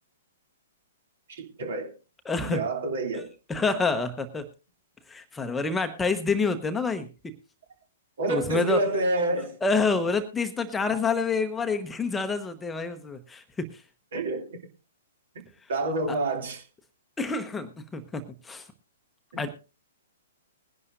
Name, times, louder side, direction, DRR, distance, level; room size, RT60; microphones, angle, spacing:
voice 1, 1.4-1.9 2.5-3.3 8.2-9.6 14.1-14.6 15.7-16.6 19.3-19.4, right 2 dB, 60° right, 2.8 m, -28 dB
voice 2, 2.2-2.6 3.1-3.2 3.5-4.5 5.1-7.1 8.3-8.8 9.6-13.8 16.1-16.2 17.2-18.7 19.4-19.5, left 4 dB, 10° left, 1.0 m, -28 dB
20.5 x 11.0 x 2.6 m
figure-of-eight pair, 115°, 0 cm